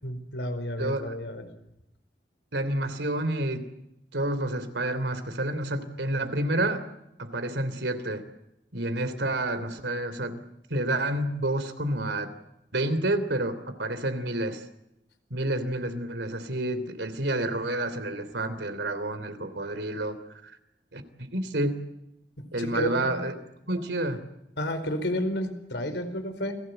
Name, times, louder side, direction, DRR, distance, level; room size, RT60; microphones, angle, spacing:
voice 1, 0.0-1.5 22.6-23.2 24.6-26.5, left 1 dB, 75° left, 7 dB, 4.7 m, -31 dB
voice 2, 0.8-1.1 2.5-3.7 4.1-6.8 7.2-8.3 8.7-10.4 10.7-12.3 12.7-14.6 15.3-20.5 20.9-21.8 22.5-23.3 23.7-24.2, right 1 dB, 75° right, 10 dB, 3.2 m, -29 dB
29.5 x 19.5 x 7.9 m, 0.84 s
head